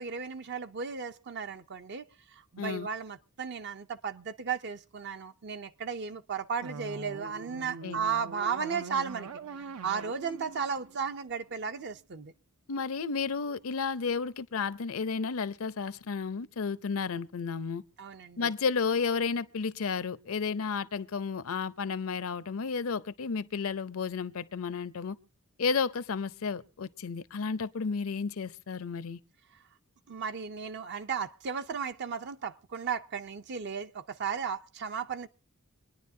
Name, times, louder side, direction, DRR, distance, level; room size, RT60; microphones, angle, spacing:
voice 1, 0.0-2.0 2.3-9.3 9.6-12.3 18.0-18.5 30.1-35.3, right 6 dB, 50° right, 0.5 m, -35 dB
voice 2, 2.6-2.9 7.8-8.0 12.7-17.8 18.4-25.2 25.6-29.2, left 5 dB, 65° left, 0.6 m, -32 dB
sound 1, 6.6-11.7, right 4 dB, 85° right, 0.7 m, -43 dB
25.5 x 9.9 x 2.7 m
head